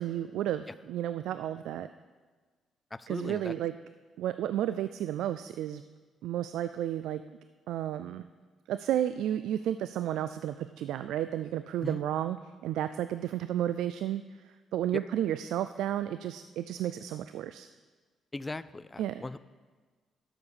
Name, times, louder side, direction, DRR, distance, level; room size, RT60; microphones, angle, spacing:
voice 1, 0.0-1.9 3.1-3.8 4.2-5.8 6.2-7.2 7.7-8.2 8.7-12.4 12.6-14.2 14.7-17.7 19.0-19.2, right 11 dB, 85° right, 12 dB, 0.3 m, -32 dB
voice 2, 2.9-3.5 11.8-12.0 14.9-15.0 18.3-19.4, left 2 dB, 20° left, 15 dB, 0.4 m, -38 dB
12.5 x 6.9 x 5.6 m, 1.4 s
cardioid pair, 90°, 0 cm